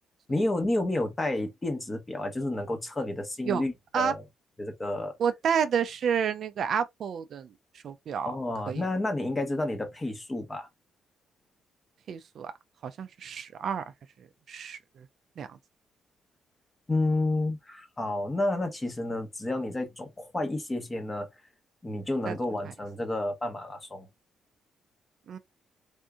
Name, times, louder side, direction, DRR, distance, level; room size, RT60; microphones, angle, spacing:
voice 1, 0.3-4.2 4.6-5.1 8.2-10.7 16.9-21.3 21.8-24.1, left 2 dB, 20° left, 1.0 m, -30 dB
voice 2, 5.2-7.5 7.8-8.4 8.7-8.8 12.1-12.5 12.8-13.8 14.5-15.1 15.4-15.6 22.3-22.4 25.3-25.4, right 7 dB, 60° right, 0.4 m, -30 dB
3.5 x 2.7 x 2.4 m
cardioid pair, 105°, 0 cm